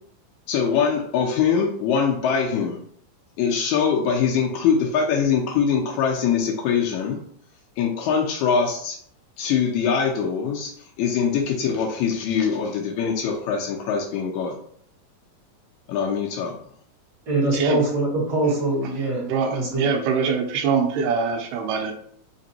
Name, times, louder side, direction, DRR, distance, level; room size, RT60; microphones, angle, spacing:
voice 1, 0.5-2.8 3.4-7.2 7.8-9.0 9.4-14.5 15.9-16.5, left 6 dB, 90° left, 0 dB, 1.6 m, -23 dB
voice 2, 17.3-19.2 19.5-19.9, right 2 dB, 40° right, -8 dB, 1.7 m, -23 dB
voice 3, 19.2-21.9, right 5 dB, 80° right, 3 dB, 2.1 m, -23 dB
5.0 x 3.0 x 2.7 m, 0.62 s
omnidirectional pair, 4.0 m